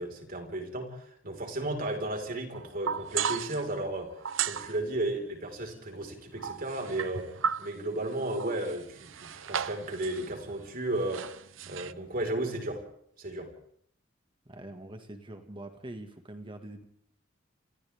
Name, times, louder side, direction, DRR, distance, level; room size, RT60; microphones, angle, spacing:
voice 1, 0.0-4.1 4.4-11.4 11.7-12.8 13.2-13.5, right 1 dB, 50° right, 3 dB, 4.9 m, -34 dB
sound 1, 2.5-3.7 4.2-4.8 6.4-7.8 8.2-10.7 11.0-11.9, right 7 dB, 85° right, 0.9 m, -35 dB
voice 2, 14.5-16.8, right 1 dB, 25° right, 6 dB, 2.0 m, -44 dB
29.0 x 27.0 x 3.7 m, 0.68 s
head